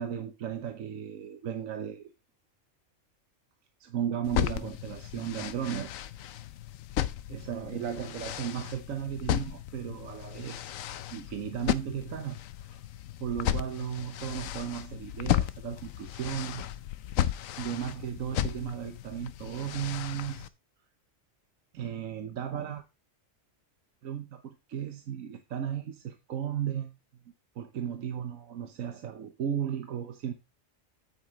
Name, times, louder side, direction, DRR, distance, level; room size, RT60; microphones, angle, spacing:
voice 1, 0.0-2.1 3.8-5.9 7.3-10.7 11.1-12.4 12.7-12.8 13.2-16.7 17.6-20.5 21.7-22.8 24.0-26.9 27.6-30.3, right 9 dB, 85° right, 1.3 m, -35 dB
sound 1, 4.2-20.5, left 11 dB, 90° left, 1.0 m, -34 dB
9.8 x 8.9 x 3.0 m
omnidirectional pair, 1.3 m